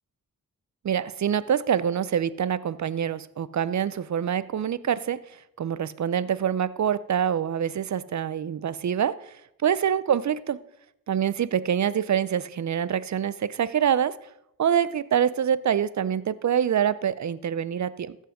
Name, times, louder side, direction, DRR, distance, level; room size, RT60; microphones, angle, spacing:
voice 1, 0.8-5.2 5.6-9.2 9.6-10.6 11.1-14.2 14.6-18.2, right 8 dB, 55° right, 17 dB, 0.6 m, -25 dB
15.0 x 5.5 x 5.0 m, 0.82 s
cardioid pair, 50°, 34 cm